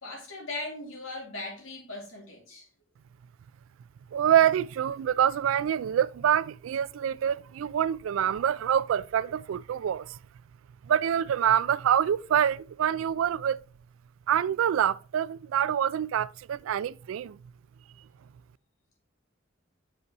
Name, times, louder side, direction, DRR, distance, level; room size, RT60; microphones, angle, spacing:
voice 1, 0.0-2.7, left 2 dB, 80° left, 2.3 m, -39 dB
voice 2, 4.1-10.2 10.8-13.6 14.3-17.4, right 9 dB, 80° right, 0.3 m, -26 dB
6.7 x 5.3 x 2.9 m
head